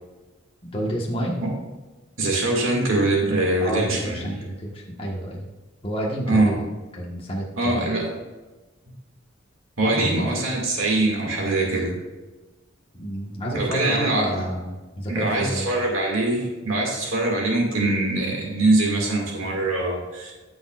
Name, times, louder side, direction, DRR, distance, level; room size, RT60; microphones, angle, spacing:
voice 1, 0.7-1.3 3.6-5.4 5.8-6.7 7.0-7.9 9.8-10.4 12.9-15.8, right 1 dB, 25° left, -3 dB, 1.5 m, -29 dB
voice 2, 2.2-4.3 6.2-6.5 7.6-8.1 9.8-11.9 13.5-14.4 15.1-20.3, right 2 dB, 85° right, -1 dB, 2.3 m, -23 dB
14.5 x 6.3 x 2.5 m, 1.2 s
head